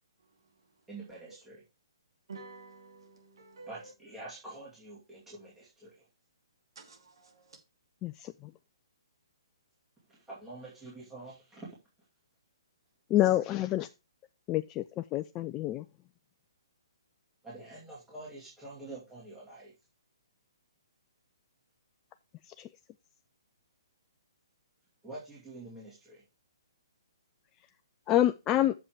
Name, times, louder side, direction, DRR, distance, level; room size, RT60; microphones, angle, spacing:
voice 1, 0.9-1.6 3.7-6.0 10.1-11.7 17.4-19.7 25.0-26.2, right 2 dB, 10° right, 2.4 m, -46 dB
voice 2, 2.3-3.9 6.8-7.6, right 3 dB, 65° right, 2.4 m, -50 dB
voice 3, 13.1-13.9 14.5-14.8 15.1-15.8 28.1-28.7, left 13 dB, 20° left, 0.3 m, -26 dB
7.2 x 5.5 x 4.7 m
figure-of-eight pair, 130°, 3 cm